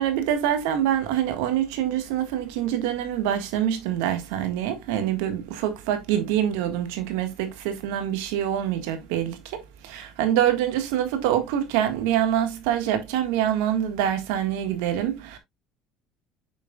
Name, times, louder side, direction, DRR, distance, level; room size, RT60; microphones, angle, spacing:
voice 1, 0.0-15.4, right 10 dB, 90° right, 1.7 m, -25 dB
8.2 x 6.1 x 2.4 m
supercardioid pair, 100°, 0 cm